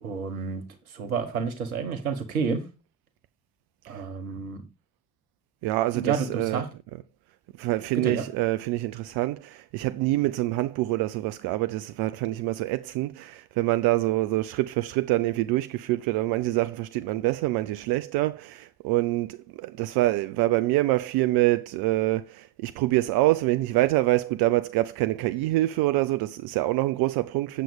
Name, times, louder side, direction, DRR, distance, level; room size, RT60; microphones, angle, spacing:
voice 1, 0.0-0.6 0.9-2.6 3.9-4.6 5.9-6.6 7.9-8.2, right 5 dB, 85° right, 1.4 m, -29 dB
voice 2, 5.6-7.0 7.6-27.6, right 17 dB, 60° right, 0.6 m, -26 dB
8.4 x 7.6 x 5.2 m
figure-of-eight pair, 45°, 41 cm